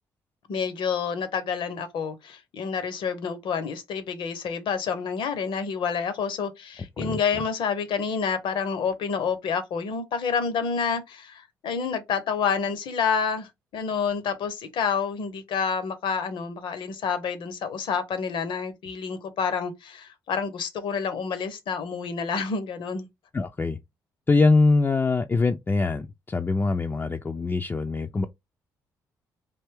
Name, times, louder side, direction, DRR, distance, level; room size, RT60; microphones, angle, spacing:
voice 1, 0.5-23.1, left 6 dB, 60° left, 0.8 m, -28 dB
voice 2, 23.3-23.8 24.3-28.3, left 3 dB, 20° left, 0.4 m, -23 dB
3.4 x 2.6 x 3.4 m
hypercardioid pair, 45°, 9 cm